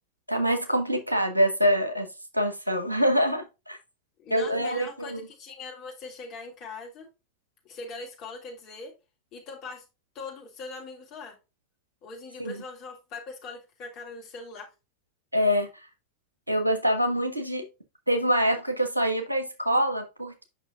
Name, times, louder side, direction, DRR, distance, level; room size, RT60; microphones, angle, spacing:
voice 1, 0.3-2.1 2.3-3.8 4.3-5.3 12.4-12.6 15.3-15.7 16.5-17.7 18.1-20.4, equal, 85° right, 1.3 m, -25 dB
voice 2, 4.2-7.1 7.6-8.9 9.3-9.8 10.1-11.4 12.0-14.7, left 3 dB, 35° left, 3.2 m, -41 dB
8.2 x 6.0 x 2.3 m
figure-of-eight pair, 90°, 0 cm